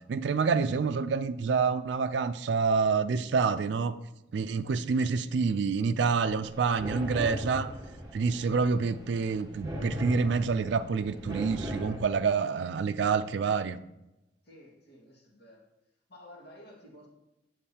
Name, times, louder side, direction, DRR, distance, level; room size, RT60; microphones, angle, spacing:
voice 1, 0.0-4.0 4.3-7.7 8.1-13.8, right 5 dB, 65° right, 11 dB, 0.3 m, -27 dB
sound 1, 6.2-12.0, equal, 20° right, 1.3 m, -38 dB
voice 2, 14.4-15.6 16.1-17.1, left 1 dB, 60° left, -3 dB, 2.0 m, -52 dB
7.3 x 7.2 x 2.8 m, 0.92 s
head